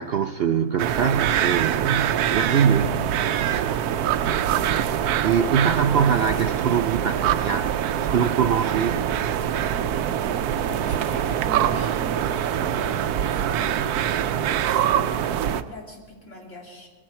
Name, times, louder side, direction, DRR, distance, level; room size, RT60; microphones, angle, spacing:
voice 1, 0.0-3.0 3.4-4.3 4.9-9.0, right 7 dB, 65° right, 8 dB, 0.6 m, -24 dB
sound 1, 0.8-15.6, right 10 dB, 85° right, 1.2 m, -24 dB
voice 2, 10.7-16.9, left 1 dB, 55° left, -2 dB, 3.3 m, -41 dB
21.5 x 15.0 x 4.4 m, 1.4 s
omnidirectional pair, 1.6 m